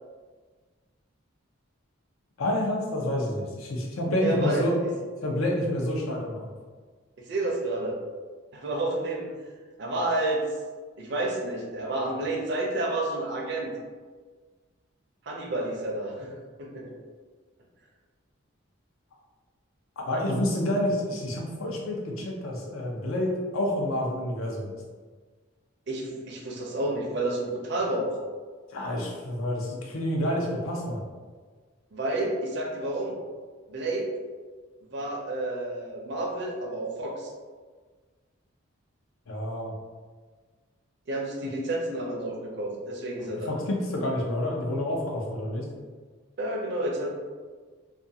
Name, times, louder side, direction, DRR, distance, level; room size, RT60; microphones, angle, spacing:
voice 1, 2.4-4.7 5.2-6.5 20.0-24.7 28.7-31.0 39.3-39.7 43.5-45.7, left 1 dB, 85° left, 0 dB, 0.6 m, -28 dB
voice 2, 4.2-4.9 7.2-8.0 8.5-9.3 9.8-10.4 11.0-13.7 15.3-16.3 16.6-16.9 25.9-28.2 31.9-33.2 33.7-34.1 34.9-37.3 41.1-43.5 46.4-47.2, right 2 dB, 55° right, 0 dB, 0.5 m, -30 dB
2.4 x 2.3 x 2.7 m, 1.5 s
head